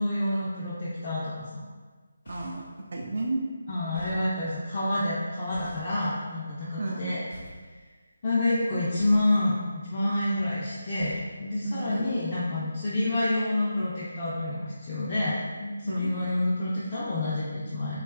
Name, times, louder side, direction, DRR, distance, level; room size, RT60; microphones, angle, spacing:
voice 1, 0.0-1.6 3.7-7.2 8.2-18.0, left 1 dB, 35° left, -9 dB, 0.4 m, -28 dB
sound 1, 2.2-2.7 3.9-4.3 5.5-5.9 7.3-7.7 9.0-9.4 11.0-11.3, left 1 dB, 65° left, 0.9 m, -45 dB
voice 2, 2.3-3.4 6.8-7.1 11.6-12.2 15.9-16.3, right 2 dB, 60° right, -1 dB, 0.3 m, -33 dB
2.6 x 2.3 x 2.3 m, 1.4 s
figure-of-eight pair, 155°, 0 cm